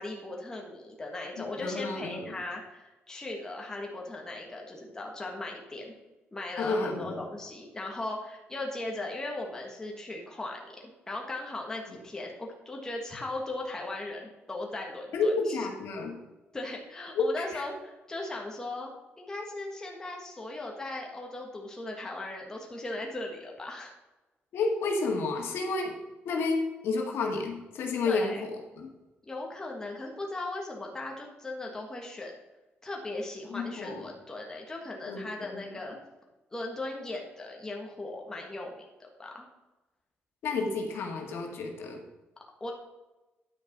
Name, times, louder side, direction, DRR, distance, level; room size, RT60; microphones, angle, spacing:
voice 1, 0.0-5.9 6.3-15.6 16.5-18.9 19.2-23.9 28.0-28.4 29.3-32.4 32.8-36.0 36.5-39.5 42.6-42.7, left 2 dB, 15° left, 0 dB, 1.5 m, -38 dB
voice 2, 1.4-2.4 6.6-7.3 15.1-16.2 17.1-17.2 17.5-17.6 24.5-28.9 33.5-34.0 35.1-35.8 40.4-42.0, left 3 dB, 75° left, 1 dB, 2.0 m, -31 dB
10.0 x 6.0 x 5.3 m, 1.1 s
cardioid pair, 160°, 4 cm